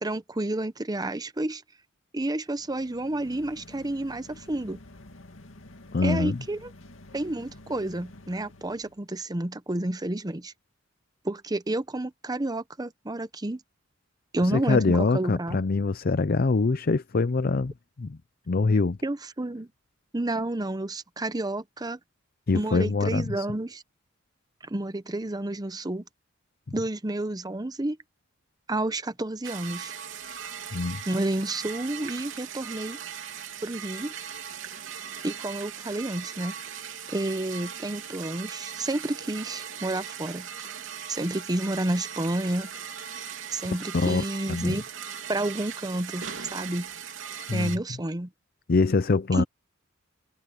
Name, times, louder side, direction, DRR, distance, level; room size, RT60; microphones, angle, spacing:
voice 1, 0.0-1.6 2.1-4.8 6.0-6.7 7.1-10.5 11.2-13.6 14.3-15.6 19.0-19.7 20.1-22.0 22.5-23.8 24.6-26.0 26.7-28.0 28.7-30.0 31.1-33.0 33.6-34.1 35.2-36.5 37.1-40.5 41.1-42.7 43.5-44.8 45.3-46.9 47.5-48.3 49.3-49.4, right 1 dB, 20° right, 0.8 m, -30 dB
sound 1, 2.4-9.1, left 1 dB, 70° left, 2.5 m, -49 dB
voice 2, 5.9-6.4 14.4-17.7 18.0-18.2 18.5-19.0 22.5-23.5 30.7-31.0 43.9-44.2 44.5-44.8 47.5-47.7 48.7-49.4, left 3 dB, 45° left, 0.5 m, -24 dB
sound 2, 29.4-47.8, right 7 dB, 70° right, 3.5 m, -39 dB
head